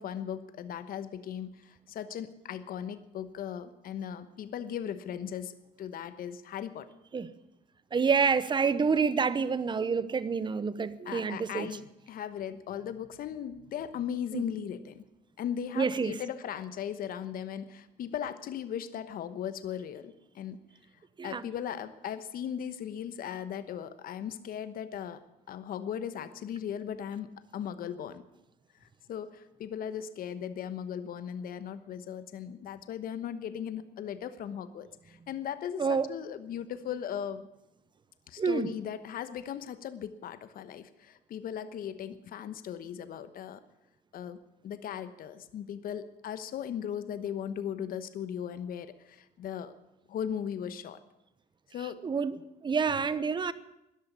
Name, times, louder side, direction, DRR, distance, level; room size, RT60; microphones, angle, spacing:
voice 1, 0.0-6.9 11.0-15.0 15.4-20.6 21.2-25.2 25.5-28.2 28.8-37.5 38.3-43.6 44.1-49.7 50.1-51.0 51.7-52.0, left 9 dB, 60° left, 1.1 m, -38 dB
voice 2, 7.9-11.7 14.3-14.5 15.8-16.2 21.2-21.4 35.8-36.1 38.4-38.7 52.0-53.5, right 5 dB, 25° right, 0.9 m, -28 dB
13.5 x 11.0 x 9.6 m
cardioid pair, 110°, 17 cm